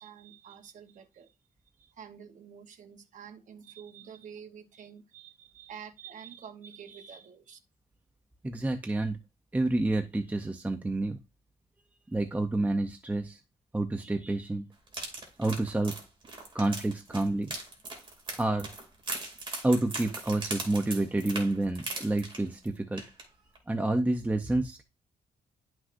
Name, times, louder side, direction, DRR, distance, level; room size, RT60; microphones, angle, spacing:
voice 1, 0.0-1.3 1.8-7.6, right 7 dB, 50° right, 1.0 m, -48 dB
voice 2, 8.4-9.2 9.5-11.2 12.1-13.4 13.7-14.7 15.4-15.9 16.5-17.6 18.4-18.7 19.6-23.0 23.7-24.8, right 2 dB, 10° right, 0.6 m, -29 dB
sound 1, 14.9-22.7 23.0-23.2 23.6-23.7, right 2 dB, 30° right, 2.6 m, -39 dB
11.0 x 6.1 x 2.6 m
wide cardioid pair, 145°, 16 cm